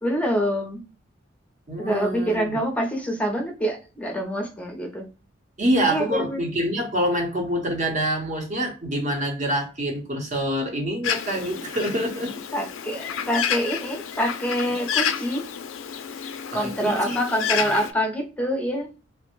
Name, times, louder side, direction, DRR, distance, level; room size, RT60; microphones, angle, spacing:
voice 1, 0.0-0.8 1.8-5.1 5.9-6.5 12.5-15.4 16.5-18.9, equal, 5° left, 2 dB, 0.6 m, -26 dB
voice 2, 1.7-2.6 5.6-12.3 16.5-17.2, equal, 40° right, 2 dB, 0.9 m, -26 dB
Bird, 11.0-17.9, left 8 dB, 80° left, 0.4 m, -30 dB
3.2 x 2.1 x 2.9 m, 0.33 s
head